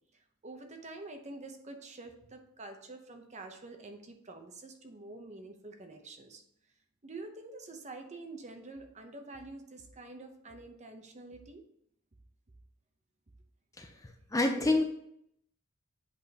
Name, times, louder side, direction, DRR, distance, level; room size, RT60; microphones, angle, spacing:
voice 1, 0.4-6.4 7.0-11.6, right 2 dB, 30° right, 5 dB, 0.8 m, -47 dB
voice 2, 13.8-14.8, left 2 dB, 15° left, 4 dB, 0.6 m, -28 dB
8.6 x 4.9 x 2.9 m, 0.73 s
head